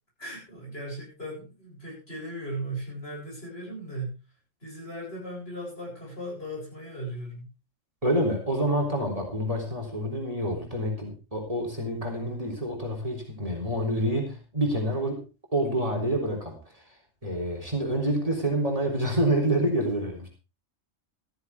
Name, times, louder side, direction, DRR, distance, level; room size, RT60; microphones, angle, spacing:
voice 1, 0.2-4.2 4.6-7.5, right 1 dB, 50° left, -2 dB, 8.1 m, -37 dB
voice 2, 8.0-15.2 15.5-17.0 17.2-20.3, right 1 dB, 25° right, 2 dB, 3.7 m, -27 dB
14.0 x 14.0 x 3.5 m, 0.31 s
omnidirectional pair, 1.3 m